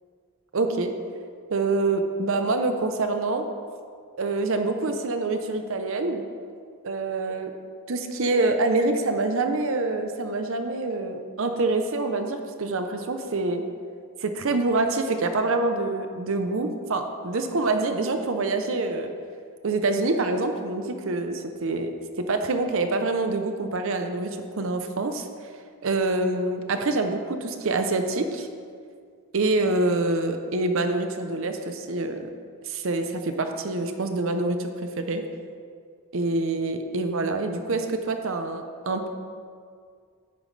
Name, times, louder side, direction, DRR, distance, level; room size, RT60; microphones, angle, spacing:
voice 1, 0.5-0.9 1.5-3.4 4.2-6.3 6.8-7.5 7.9-13.6 14.2-19.1 19.6-21.9 22.3-25.3 25.8-28.5 29.3-32.3 32.6-35.2 36.1-39.1, right 2 dB, 60° right, 6 dB, 0.7 m, -26 dB
10.0 x 9.3 x 3.3 m, 2.2 s
head